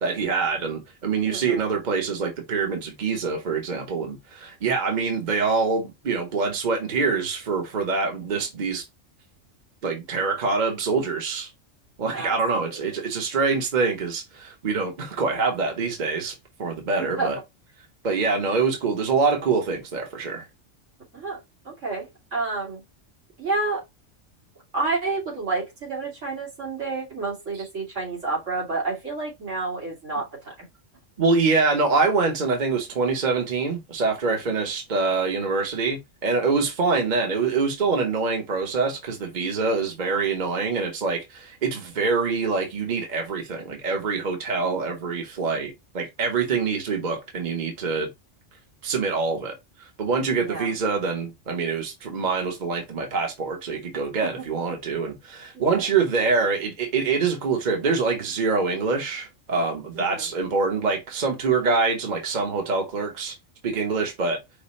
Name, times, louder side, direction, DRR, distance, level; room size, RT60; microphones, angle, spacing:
voice 1, 0.0-8.8 9.8-11.5 12.0-16.3 16.6-17.4 18.0-20.4 31.2-48.1 48.8-49.5 49.8-63.3 63.6-64.4, right 4 dB, 40° right, 1.0 m, -25 dB
voice 2, 1.3-1.7 12.1-12.7 13.0-13.1 17.0-17.3 21.1-21.4 21.6-22.8 23.4-23.8 24.7-30.7 50.3-50.7 54.3-54.4 55.5-55.9 60.0-60.3, right 3 dB, 75° right, 2.5 m, -30 dB
5.1 x 2.2 x 4.1 m
omnidirectional pair, 1.3 m